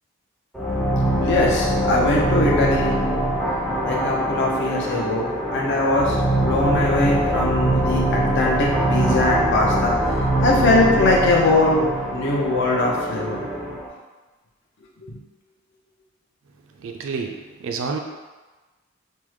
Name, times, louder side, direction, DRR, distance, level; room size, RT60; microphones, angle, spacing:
sound 1, 0.5-13.9, right 1 dB, ahead, 0.4 m, -23 dB
voice 1, 1.2-2.9 3.8-9.9 10.4-11.8 12.1-13.4, left 2 dB, 60° left, -3 dB, 0.6 m, -21 dB
voice 2, 16.8-18.0, right 5 dB, 70° right, 3 dB, 0.4 m, -29 dB
3.4 x 2.0 x 3.1 m, 1.2 s
head